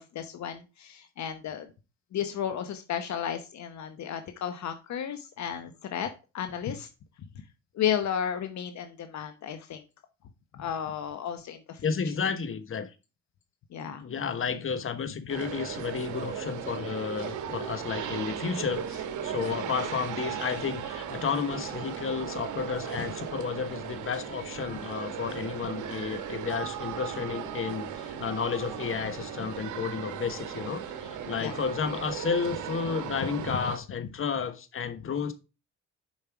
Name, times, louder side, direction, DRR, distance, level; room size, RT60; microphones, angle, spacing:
voice 1, 0.0-1.7 2.1-6.9 7.3-7.4 7.7-9.8 10.5-11.9 13.7-14.1 23.0-23.1 29.4-29.7 31.3-31.6 33.2-33.6 34.0-34.1, left 9 dB, 65° left, 1.0 m, -33 dB
voice 2, 11.8-12.9 14.0-35.3, left 6 dB, 45° left, 1.3 m, -32 dB
sound 1, 15.3-33.8, right 8 dB, 80° right, 1.5 m, -37 dB
7.4 x 5.4 x 4.7 m
cardioid pair, 90°, 30 cm